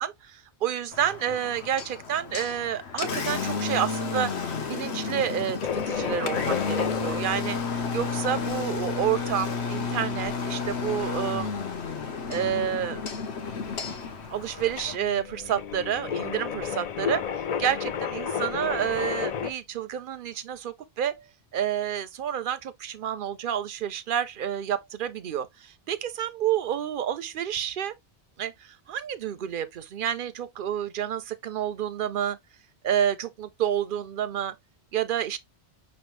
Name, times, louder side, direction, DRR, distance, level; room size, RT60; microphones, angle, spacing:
voice 1, 0.0-11.5 12.3-13.0 14.3-17.2 17.6-21.2 21.5-28.0 28.4-32.4 32.8-34.6 34.9-35.4, right 9 dB, 60° right, 0.6 m, -29 dB
Engine, 0.9-15.0, left 5 dB, 75° left, 1.1 m, -32 dB
sound 1, 5.6-19.5, left 7 dB, 55° left, 0.4 m, -34 dB
5.7 x 3.1 x 3.0 m
omnidirectional pair, 1.1 m